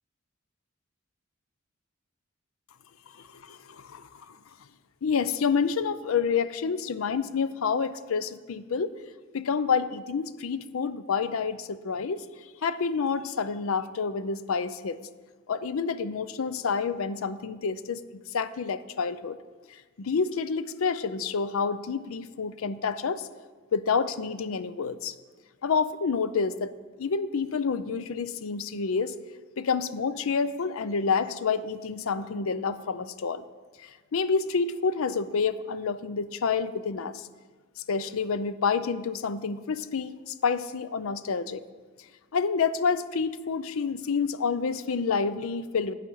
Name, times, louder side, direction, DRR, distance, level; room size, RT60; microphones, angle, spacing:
voice 1, 3.3-4.4 5.0-8.9 9.3-12.2 12.6-15.0 15.5-18.0 18.3-19.4 20.0-23.3 23.7-25.1 25.6-26.7 27.0-29.1 29.6-33.4 34.1-37.3 37.9-41.6 42.3-45.9, left 5 dB, 85° left, 14 dB, 0.5 m, -28 dB
11.5 x 8.6 x 4.7 m, 1.4 s
head